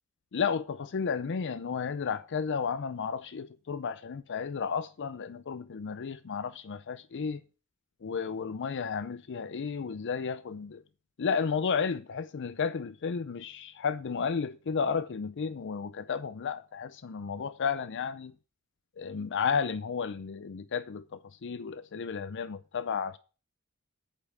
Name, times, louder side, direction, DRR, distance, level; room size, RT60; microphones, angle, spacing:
voice 1, 0.3-7.4 8.0-10.8 11.2-18.3 19.0-23.2, left 6 dB, 55° left, 0.5 m, -33 dB
8.3 x 5.4 x 7.3 m
head